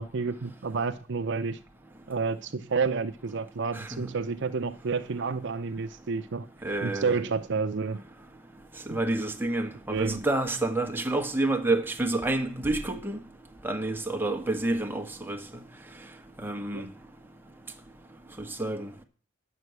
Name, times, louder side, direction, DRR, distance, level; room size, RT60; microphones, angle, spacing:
voice 1, 0.0-1.6 2.1-6.5 6.8-8.0 8.9-9.0 9.9-10.2 16.7-16.9, right 4 dB, 65° right, 0.6 m, -30 dB
voice 2, 6.6-7.2 8.9-13.2 13.6-15.4 16.4-16.8 18.6-18.9, right 2 dB, 10° right, 1.3 m, -28 dB
10.0 x 6.2 x 8.0 m
head